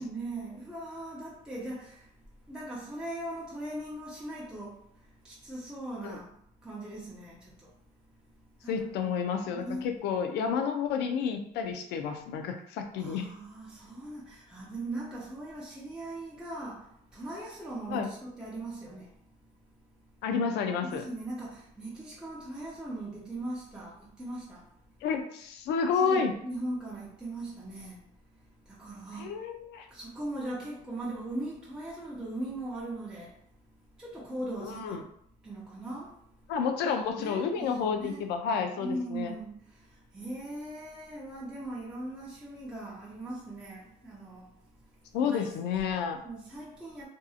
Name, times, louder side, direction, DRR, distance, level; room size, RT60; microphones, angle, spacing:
voice 1, 0.0-2.1 2.5-4.8 5.2-6.3 6.6-7.7 8.6-8.9 9.5-9.9 13.0-19.1 20.8-24.7 26.0-28.0 28.7-29.3 29.9-33.4 34.0-35.0 35.4-36.1 37.0-38.2 38.8-39.8 40.1-44.5 45.2-45.5 46.2-47.1, right 1 dB, 5° right, 0.6 m, -39 dB
voice 2, 8.7-13.3 17.9-18.1 20.2-21.0 25.0-26.3 29.2-29.9 34.6-35.0 36.5-39.3 45.1-46.2, left 6 dB, 85° left, 0.4 m, -30 dB
2.6 x 2.6 x 2.4 m
cardioid pair, 110°, 17 cm